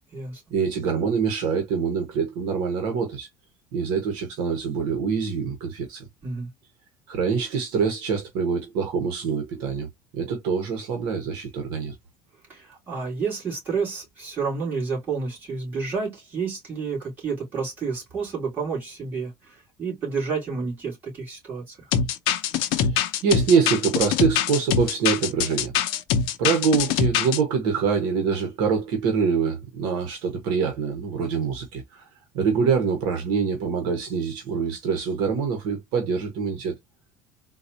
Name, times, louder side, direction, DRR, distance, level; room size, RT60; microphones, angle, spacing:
voice 1, 0.5-3.3 3.7-6.0 7.1-9.9 10.1-11.9 22.8-25.7 26.4-32.1 32.3-36.8, right 6 dB, 60° right, 1.1 m, -25 dB
voice 2, 12.5-21.9, right 5 dB, 20° right, 2.6 m, -30 dB
sound 1, 21.9-27.4, left 8 dB, 60° left, 0.6 m, -23 dB
4.0 x 2.3 x 2.8 m
cardioid pair, 175°, 9 cm